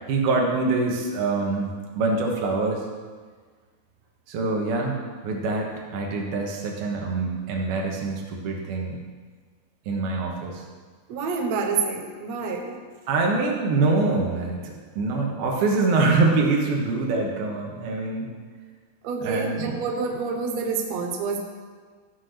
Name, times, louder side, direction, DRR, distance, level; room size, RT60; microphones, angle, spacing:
voice 1, 0.1-2.8 4.3-9.0 9.9-10.6 13.1-18.3 19.2-19.7, right 3 dB, 70° right, 0 dB, 3.1 m, -25 dB
voice 2, 11.1-12.8 19.0-21.4, right 4 dB, 85° right, 3 dB, 1.5 m, -28 dB
13.5 x 6.1 x 6.5 m, 1.5 s
omnidirectional pair, 4.9 m